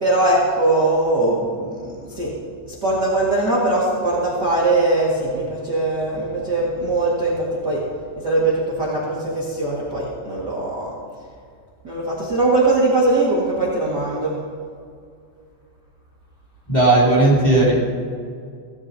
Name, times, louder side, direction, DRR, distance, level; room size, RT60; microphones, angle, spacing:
voice 1, 0.0-2.3 2.8-7.3 7.6-7.8 8.2-10.9 11.8-14.4, right 2 dB, 80° right, -5 dB, 0.9 m, -20 dB
voice 2, 16.7-17.8, right 2 dB, 15° left, -6 dB, 1.8 m, -15 dB
17.5 x 14.5 x 2.8 m, 2.2 s
omnidirectional pair, 5.3 m